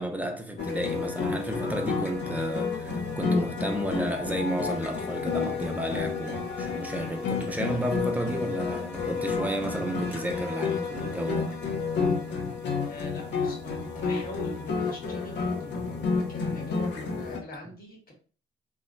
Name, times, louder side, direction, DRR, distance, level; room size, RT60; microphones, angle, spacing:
voice 1, 0.0-11.5, right 1 dB, 10° right, 0.5 m, -32 dB
sound 1, 0.6-17.4, left 5 dB, 65° left, 0.7 m, -30 dB
voice 2, 12.7-18.1, left 2 dB, 50° left, 1.2 m, -42 dB
3.0 x 2.2 x 2.5 m
cardioid pair, 90°, 20 cm